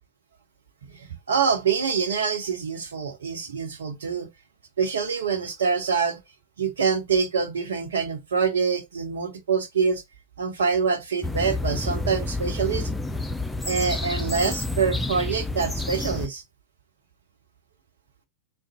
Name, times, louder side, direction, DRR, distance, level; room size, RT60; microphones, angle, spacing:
voice 1, 0.9-4.3 4.8-6.2 6.6-10.0 10.4-12.9 13.6-16.4, right 5 dB, 65° right, 0.9 m, -25 dB
sound 1, 11.2-16.3, left 2 dB, 5° left, 0.5 m, -29 dB
3.8 x 2.1 x 4.1 m
figure-of-eight pair, 90°, 0 cm